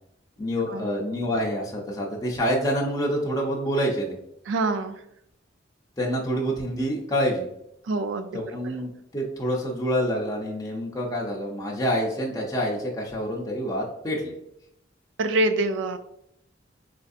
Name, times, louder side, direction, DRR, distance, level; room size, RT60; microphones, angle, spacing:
voice 1, 0.4-4.2 6.0-7.5 8.3-14.3, equal, 20° left, -2 dB, 0.6 m, -27 dB
voice 2, 4.5-5.0 7.9-8.4 15.2-16.0, right 2 dB, 75° right, 10 dB, 0.4 m, -25 dB
4.4 x 2.6 x 2.4 m, 0.78 s
head